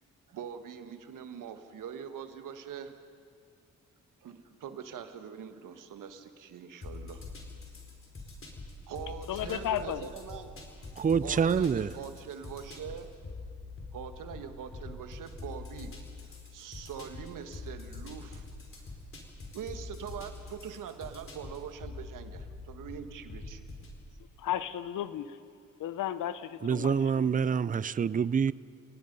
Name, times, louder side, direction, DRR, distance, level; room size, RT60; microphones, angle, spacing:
voice 1, 0.3-2.9 4.2-7.2 8.9-10.5 10.8-10.9 11.2-13.0 13.9-15.9 16.2-18.5 19.5-23.7, right 8 dB, 80° right, 1.6 m, -43 dB
sound 1, 6.8-24.0, left 3 dB, 40° left, 4.5 m, -45 dB
voice 2, 9.3-10.1 24.4-25.4 25.8-27.6, left 11 dB, 80° left, 0.9 m, -34 dB
voice 3, 11.0-11.9 26.6-28.5, right 6 dB, 25° right, 0.5 m, -26 dB
29.0 x 18.0 x 5.4 m
supercardioid pair, 60°, 32 cm